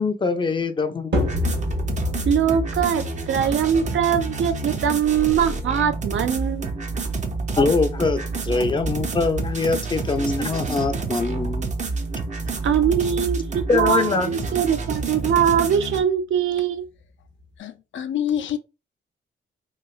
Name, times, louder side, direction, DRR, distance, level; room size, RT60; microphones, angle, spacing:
voice 1, 0.0-1.3 7.6-11.7 13.7-14.3, left 4 dB, 25° left, 0.4 m, -23 dB
sound 1, 1.1-16.0, right 4 dB, 40° right, 0.5 m, -28 dB
sound 2, 1.1-17.6, left 2 dB, 65° right, 1.2 m, -34 dB
voice 2, 2.3-6.7 12.6-16.9, right 8 dB, 85° right, 0.5 m, -22 dB
voice 3, 17.6-18.6, left 10 dB, 80° left, 0.5 m, -26 dB
3.1 x 2.8 x 2.4 m
wide cardioid pair, 130°, 19 cm